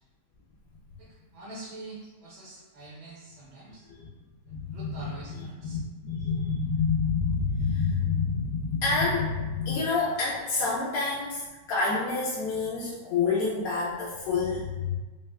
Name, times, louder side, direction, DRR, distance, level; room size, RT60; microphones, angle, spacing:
voice 1, 1.0-3.8 4.7-5.8, right 2 dB, 80° right, -7 dB, 1.5 m, -45 dB
voice 2, 4.5-15.0, left 4 dB, 70° left, -6 dB, 0.9 m, -28 dB
4.0 x 2.1 x 2.3 m, 1.2 s
omnidirectional pair, 1.9 m